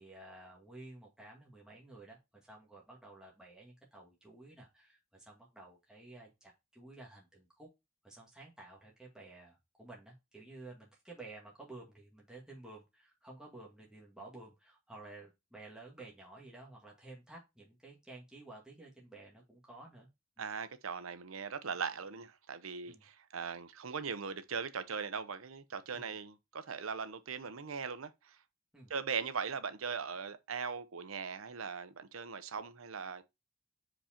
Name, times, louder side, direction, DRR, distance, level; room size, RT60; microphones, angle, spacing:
voice 1, 0.0-7.7 8.0-20.1 20.4-20.5 22.9-23.1 25.9-26.2 28.7-28.9, right 2 dB, 5° right, 2.0 m, -53 dB
voice 2, 20.4-28.4 28.9-33.2, right 5 dB, 90° right, 0.8 m, -40 dB
5.1 x 5.1 x 4.3 m
head